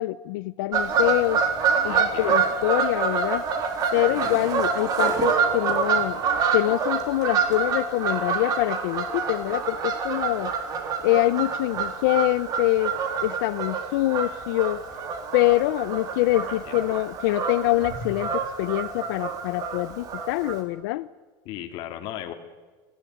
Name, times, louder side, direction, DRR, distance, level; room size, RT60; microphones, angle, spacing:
voice 1, 0.0-1.4 1.8-3.4 3.9-6.2 6.5-10.5 11.0-13.0 13.2-14.8 15.3-21.1, left 17 dB, 80° left, 14 dB, 0.7 m, -25 dB
Fowl / Bird vocalization bird call bird song, 0.7-20.6, right 5 dB, 35° right, 3.8 m, -27 dB
voice 2, 1.8-2.4 4.1-4.2 16.3-16.7 21.4-22.3, left 12 dB, 50° left, 4 dB, 2.5 m, -37 dB
28.5 x 16.5 x 9.4 m, 1.3 s
cardioid pair, 170°, 11 cm